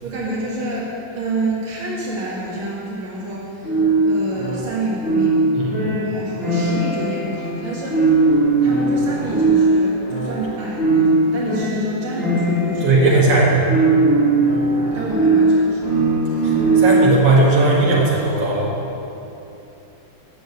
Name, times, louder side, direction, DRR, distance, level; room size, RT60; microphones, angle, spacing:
voice 1, 0.0-5.6 6.0-13.2 14.9-16.0, right 2 dB, 80° right, -5 dB, 2.5 m, -28 dB
sound 1, 3.6-17.2, right 2 dB, 30° left, 2.4 m, -19 dB
voice 2, 12.8-13.6 16.4-18.7, right 2 dB, 60° right, -5 dB, 2.6 m, -17 dB
9.8 x 6.5 x 8.2 m, 2.8 s
omnidirectional pair, 2.2 m